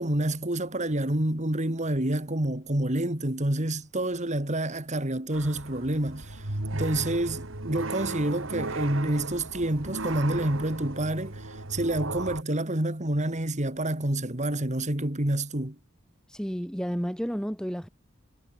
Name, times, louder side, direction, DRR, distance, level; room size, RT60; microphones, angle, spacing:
voice 1, 0.0-6.4 6.7-15.8, right 1 dB, 35° right, 2.8 m, -28 dB
sound 1, 5.3-12.4, right 2 dB, 70° right, 2.7 m, -36 dB
voice 2, 16.3-17.9, equal, 5° left, 3.2 m, -31 dB
head